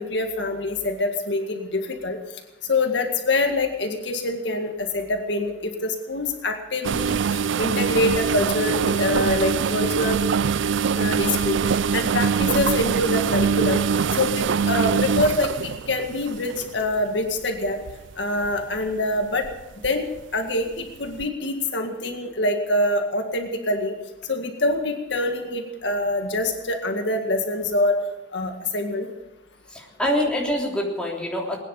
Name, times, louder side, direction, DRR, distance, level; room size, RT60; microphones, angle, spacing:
voice 1, 0.0-2.2 2.7-10.2 10.9-11.6 11.9-13.8 14.2-17.8 18.2-19.5 19.8-20.1 20.3-23.9 24.3-28.0 28.3-29.1, left 2 dB, 70° left, 4 dB, 1.9 m, -25 dB
sound 1, 6.8-17.0 17.7-18.0 18.4-18.6 19.4-19.9 20.2-20.3 21.2-21.3, right 6 dB, 85° right, 0.4 m, -23 dB
voice 2, 29.7-31.6, equal, 5° left, -2 dB, 3.4 m, -25 dB
21.0 x 10.0 x 6.9 m, 0.99 s
head